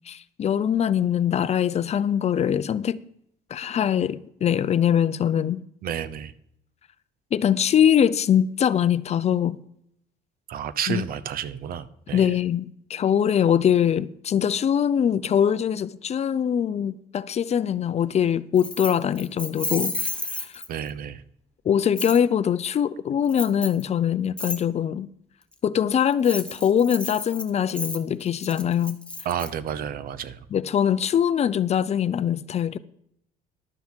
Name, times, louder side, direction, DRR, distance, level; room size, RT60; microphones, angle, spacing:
voice 1, 0.1-3.0 3.5-5.6 7.3-9.6 10.9-11.0 12.1-20.6 21.7-25.1 25.6-29.0 30.5-32.8, left 9 dB, 40° left, 0.5 m, -23 dB
voice 2, 5.8-6.3 10.5-12.3 20.7-21.2 29.2-30.4, right 9 dB, 60° right, 0.8 m, -31 dB
Keys jangling, 18.6-20.9 22.0-22.2 23.3-23.8 24.4-24.6 26.1-29.5, left 2 dB, 5° left, 1.1 m, -32 dB
12.0 x 9.3 x 4.5 m
cardioid pair, 110°, 17 cm